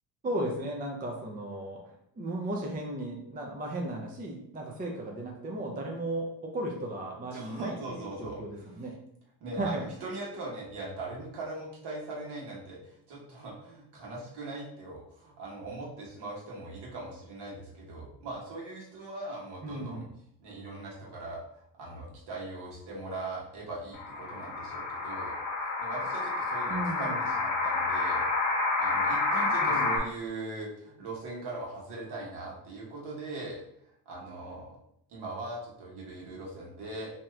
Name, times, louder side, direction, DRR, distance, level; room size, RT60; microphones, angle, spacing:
voice 1, 0.2-1.8 2.2-8.9 9.6-9.8 19.6-20.0 26.7-27.2 29.6-30.0, right 1 dB, 20° right, 0 dB, 0.5 m, -35 dB
voice 2, 7.3-8.7 9.4-20.0 20.4-25.3 25.8-28.2 28.5-33.6 34.0-34.7 35.1-37.1, right 2 dB, 60° right, -4 dB, 1.3 m, -40 dB
sound 1, 23.9-30.0, left 3 dB, 80° left, 0.9 m, -29 dB
2.8 x 2.4 x 3.2 m, 0.73 s
cardioid pair, 105°, 45 cm